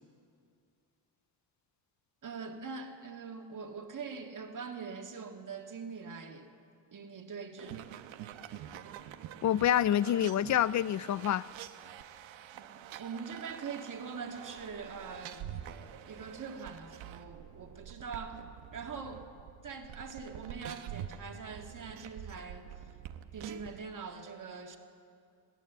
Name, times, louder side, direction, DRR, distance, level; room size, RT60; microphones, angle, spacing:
voice 1, 2.2-6.5 6.9-8.1 12.5-15.5 16.1-18.4 18.7-19.3 19.6-22.7 23.3-24.8, right 5 dB, 40° right, 3 dB, 1.9 m, -43 dB
sound 1, 7.6-23.8, right 10 dB, 90° right, 1.1 m, -46 dB
voice 2, 9.4-11.4, left 11 dB, 40° left, 20 dB, 0.4 m, -27 dB
21.5 x 16.5 x 8.1 m, 2.4 s
cardioid pair, 110°, 45 cm